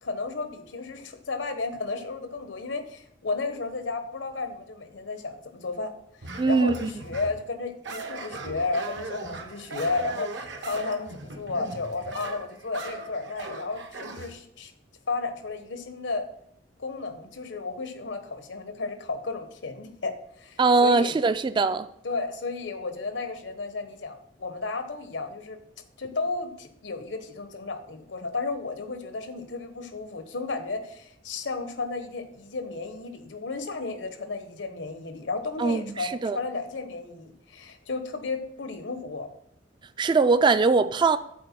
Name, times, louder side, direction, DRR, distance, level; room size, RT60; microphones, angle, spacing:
voice 1, 0.0-5.9 6.2-14.7 15.1-16.3 16.8-21.2 22.0-25.6 26.0-39.3, left 3 dB, 85° left, 1.0 m, -33 dB
sound 1, 6.2-7.4 7.8-14.3, right 3 dB, 75° right, 1.0 m, -38 dB
voice 2, 6.4-6.9 20.6-21.9 35.6-35.8 36.2-36.4 40.0-41.2, right 4 dB, 25° right, 0.3 m, -21 dB
7.7 x 4.3 x 5.8 m
head